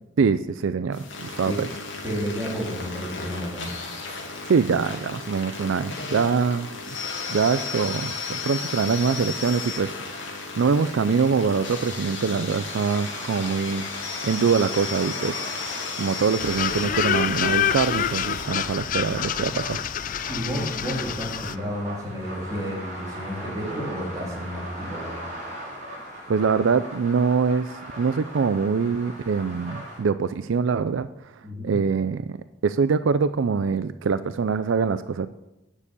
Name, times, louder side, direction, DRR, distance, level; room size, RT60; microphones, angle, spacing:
voice 1, 0.2-1.7 4.5-7.0 7.3-13.9 14.2-15.5 16.0-19.8 26.3-31.3 31.6-32.4 32.6-35.3, right 5 dB, 75° right, 13 dB, 0.4 m, -24 dB
sound 1, 0.9-18.4, left 4 dB, 75° left, 2.6 m, -34 dB
voice 2, 2.0-3.7 20.3-25.2 31.4-31.8, equal, 15° right, -4 dB, 3.6 m, -31 dB
sound 2, 12.4-30.0, right 1 dB, 40° right, 4.4 m, -39 dB
sound 3, 16.4-21.6, left 9 dB, 40° left, 0.3 m, -27 dB
9.9 x 6.8 x 8.4 m, 0.95 s
head